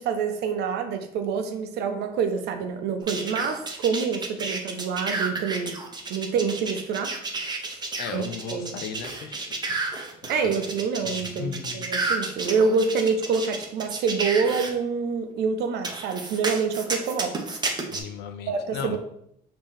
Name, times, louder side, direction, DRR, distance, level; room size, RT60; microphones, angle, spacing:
voice 1, 0.0-5.8 6.1-7.1 7.6-7.8 8.1-8.2 8.5-8.7 10.3-17.4 18.5-19.0, right 5 dB, 75° right, 7 dB, 0.7 m, -26 dB
sound 1, 3.1-14.7 15.8-18.0, right 3 dB, 25° right, 0.7 m, -31 dB
voice 2, 8.0-9.8 11.0-11.9 17.9-19.0, left 7 dB, 85° left, 7 dB, 0.6 m, -36 dB
5.4 x 2.9 x 3.3 m, 0.75 s
cardioid pair, 110°, 17 cm